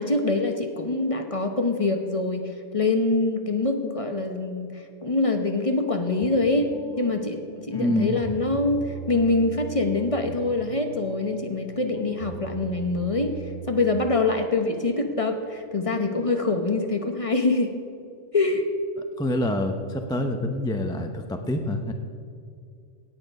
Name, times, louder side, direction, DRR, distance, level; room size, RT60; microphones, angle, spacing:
voice 1, 0.0-6.7 7.0-17.7 18.3-18.7, left 3 dB, 30° left, 5 dB, 0.8 m, -25 dB
sound 1, 6.2-14.3, right 6 dB, 60° right, 3.0 m, -40 dB
voice 2, 7.7-8.2 19.0-21.9, left 1 dB, 5° left, 5 dB, 0.4 m, -26 dB
17.0 x 8.7 x 5.4 m, 2.3 s
omnidirectional pair, 1.4 m